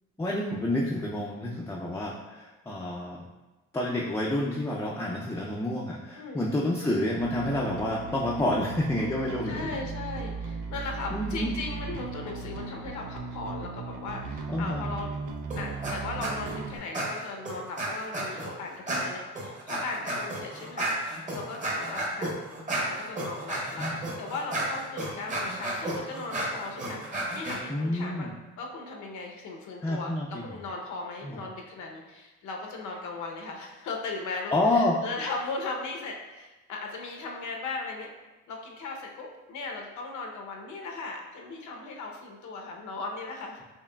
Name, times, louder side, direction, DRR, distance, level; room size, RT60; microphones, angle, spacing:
voice 1, 0.2-3.2 3.7-9.6 11.1-11.5 14.5-14.9 23.8-24.0 27.7-28.3 29.8-30.4 31.2-31.4 34.5-35.0, left 1 dB, 10° left, -3 dB, 0.4 m, -29 dB
voice 2, 6.1-6.5 9.4-15.1 15.6-22.4 22.9-23.9 24.2-28.3 28.6-38.1 38.5-43.6, left 3 dB, 70° left, 1 dB, 0.7 m, -37 dB
Bass guitar, 7.2-16.8, right 4 dB, 80° right, 0.5 m, -37 dB
sound 1, 15.5-16.0 16.2-16.6 16.9-18.5 18.9-27.6, right 1 dB, 25° right, 0.8 m, -32 dB
4.6 x 2.9 x 2.2 m, 1.1 s
cardioid pair, 90°, 30 cm